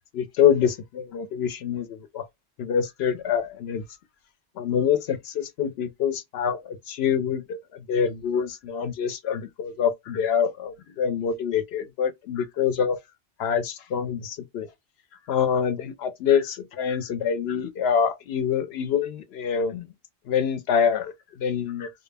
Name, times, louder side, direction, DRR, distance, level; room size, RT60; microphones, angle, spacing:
voice 1, 0.1-2.3 2.6-3.8 4.6-13.0 13.4-14.7 15.3-19.9 20.3-21.9, left 7 dB, 70° left, 0.8 m, -25 dB
2.2 x 2.0 x 3.2 m
omnidirectional pair, 1.2 m